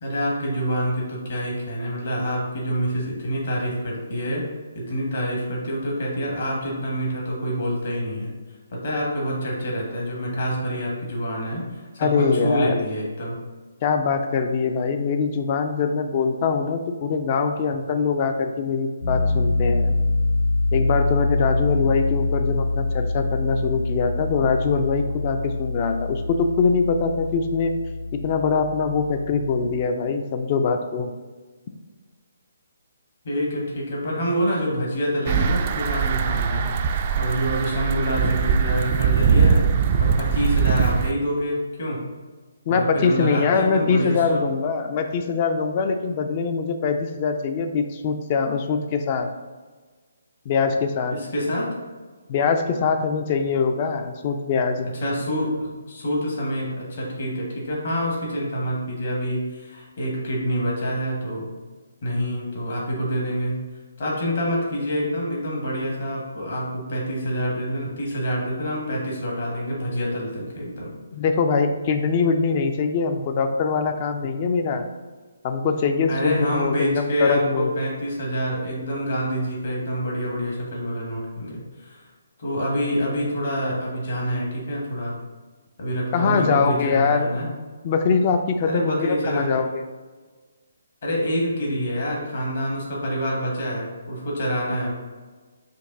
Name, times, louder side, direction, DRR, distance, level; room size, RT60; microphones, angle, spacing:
voice 1, 0.0-4.4 4.7-8.3 8.7-11.6 11.9-13.3 33.2-36.7 37.1-39.6 40.0-42.0 42.7-44.4 51.1-51.7 55.0-61.5 62.0-63.6 64.0-70.9 76.1-82.0 82.4-85.1 85.8-87.5 88.6-89.6 91.0-94.9, equal, 55° left, -3 dB, 1.5 m, -26 dB
voice 2, 12.0-12.8 13.8-20.0 20.7-27.7 28.1-31.1 42.7-49.3 50.5-51.2 52.3-54.9 71.1-74.9 75.4-77.8 86.1-87.3 87.8-89.8, left 5 dB, 35° left, 7 dB, 0.4 m, -23 dB
Piano, 19.0-29.8, left 2 dB, 85° left, 1.2 m, -25 dB
sound 1, 35.3-41.1, right 6 dB, 35° right, 0.3 m, -21 dB
5.3 x 2.5 x 3.8 m, 1.4 s
figure-of-eight pair, 140°, 0 cm